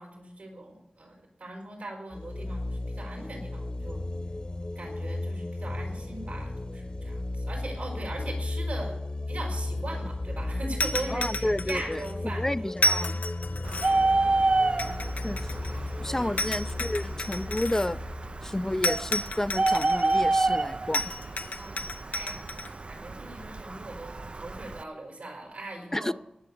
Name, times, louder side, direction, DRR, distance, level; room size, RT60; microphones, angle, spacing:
voice 1, 0.0-4.0 4.7-9.0 9.3-12.7 13.8-14.2 16.0-16.3 21.6-22.4 22.9-26.1, right 2 dB, 85° right, 1 dB, 5.0 m, -40 dB
sound 1, 2.1-19.5, left 2 dB, 40° left, 1.0 m, -35 dB
sound 2, 10.8-12.1 12.8-14.1 14.8-15.9 16.4-17.9 18.8-20.2 20.9-22.7, left 1 dB, 90° left, 0.6 m, -31 dB
voice 2, 11.1-13.2 15.2-15.5 16.0-18.0 18.4-21.1 25.9-26.1, left 1 dB, 20° left, 14 dB, 0.4 m, -31 dB
Bird, 13.7-24.8, right 2 dB, 45° right, 0.4 m, -29 dB
18.5 x 6.8 x 7.1 m, 0.85 s
wide cardioid pair, 65°, 3 cm